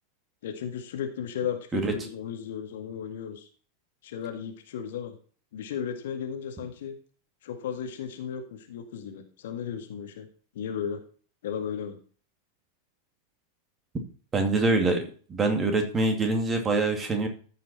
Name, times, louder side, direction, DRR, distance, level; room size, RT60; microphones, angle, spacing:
voice 1, 0.4-3.5 4.0-5.2 5.5-6.9 7.4-10.3 10.5-11.0 11.4-12.0, left 8 dB, 55° left, 4 dB, 1.9 m, -35 dB
voice 2, 14.3-15.0 15.3-17.3, right 3 dB, 20° right, 4 dB, 2.3 m, -24 dB
14.0 x 5.5 x 4.2 m, 0.42 s
figure-of-eight pair, 90°, 0 cm